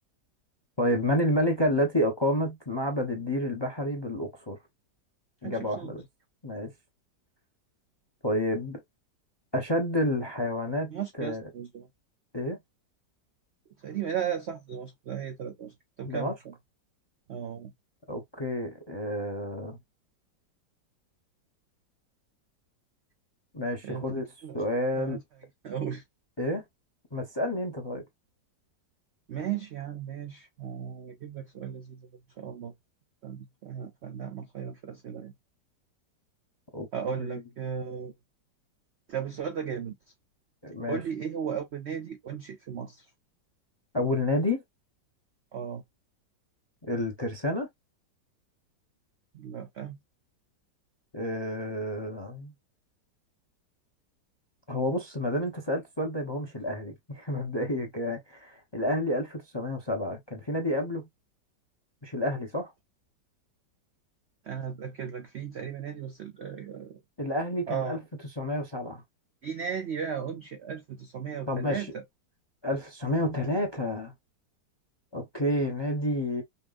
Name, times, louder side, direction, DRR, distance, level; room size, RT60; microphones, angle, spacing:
voice 1, 0.8-4.6 5.4-6.0 6.4-6.7 8.2-8.8 9.5-11.4 12.3-12.6 16.1-16.3 18.1-19.8 23.5-24.2 24.5-25.2 26.4-26.6 27.1-28.0 36.7-36.9 37.2-37.4 40.6-41.0 43.9-44.6 46.8-47.7 51.1-52.5 54.7-61.1 62.0-62.7 67.2-68.0 68.4-69.0 71.5-71.8 72.6-74.1 75.1-76.4, left 1 dB, 25° left, 0.6 m, -29 dB
voice 2, 5.4-5.9 10.9-11.9 13.8-16.5 17.3-17.7 23.8-24.6 25.0-25.2 25.6-26.0 29.3-32.1 32.4-32.7 33.2-35.3 36.9-38.1 39.1-40.0 40.9-43.0 45.5-45.8 49.3-50.0 64.4-67.0 67.7-68.0 69.4-72.0, right 8 dB, 75° right, 0.6 m, -36 dB
5.6 x 2.4 x 2.5 m
omnidirectional pair, 2.0 m